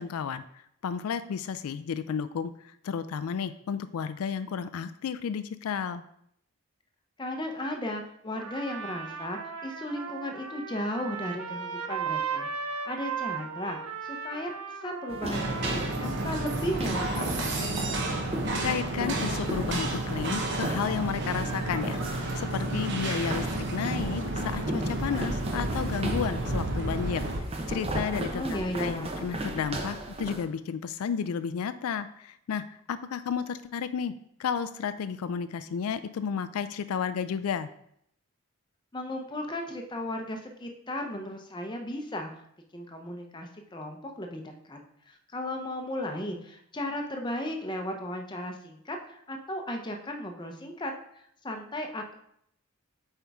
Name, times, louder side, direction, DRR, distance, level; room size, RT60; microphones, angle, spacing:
voice 1, 0.0-6.0 18.6-34.1 34.4-37.7, left 7 dB, 80° left, 12 dB, 0.3 m, -32 dB
voice 2, 7.2-14.5 14.8-17.9 28.3-29.1 38.9-42.3 42.7-44.8 45.1-50.9 51.4-52.1, left 1 dB, 20° left, 3 dB, 0.6 m, -35 dB
Trumpet, 8.3-16.8, right 6 dB, 90° right, 0.7 m, -37 dB
sound 1, 15.1-30.4, right 1 dB, 25° right, 0.7 m, -36 dB
sound 2, 15.3-27.4, right 2 dB, 55° right, 1.0 m, -31 dB
8.0 x 4.5 x 3.5 m, 0.71 s
head